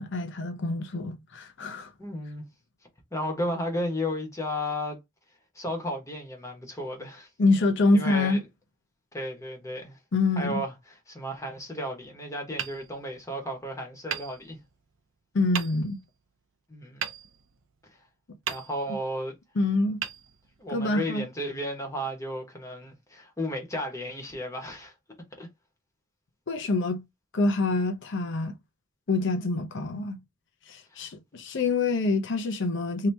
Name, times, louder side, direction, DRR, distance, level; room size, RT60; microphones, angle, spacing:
voice 1, 0.0-1.9 7.4-8.4 10.1-10.6 15.3-16.0 19.6-20.0 20.7-21.2 26.5-27.0 27.3-28.5 29.1-30.2 30.7-33.1, left 2 dB, 60° left, 0.6 m, -26 dB
voice 2, 2.0-2.4 3.1-5.0 5.5-7.3 7.9-8.4 9.1-10.0 10.4-10.7 11.1-14.6 16.7-17.0 18.5-19.3 20.6-24.9 25.4-25.5 30.9-31.0, left 1 dB, 15° left, 1.1 m, -33 dB
Hammer, 12.5-13.6 14.1-15.0 15.5-16.2 17.0-18.0 18.4-19.2 20.0-20.9, right 8 dB, 70° right, 0.6 m, -37 dB
2.8 x 2.8 x 3.3 m
head